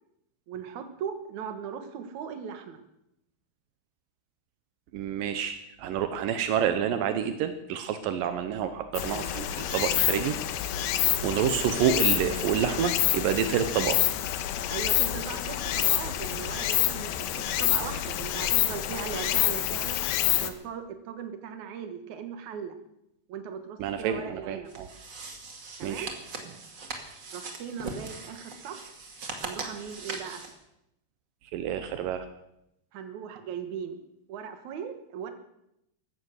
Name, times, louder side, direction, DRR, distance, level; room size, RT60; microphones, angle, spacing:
voice 1, 0.5-2.8 10.9-11.2 14.7-20.0 20.3-22.8 23.3-24.7 25.8-26.1 27.3-28.8 29.4-30.4 32.9-34.0 34.3-35.3, right 7 dB, 60° right, 7 dB, 2.1 m, -38 dB
voice 2, 4.9-10.4 10.9-14.0 23.8-24.9 25.8-26.1 31.5-32.3, right 8 dB, 85° right, 8 dB, 2.0 m, -28 dB
Stream, 9.0-20.5, left 12 dB, 75° left, 2.4 m, -27 dB
sound 1, 24.7-30.5, right 3 dB, 45° right, 1.5 m, -40 dB
15.5 x 13.0 x 6.4 m, 0.83 s
omnidirectional pair, 5.1 m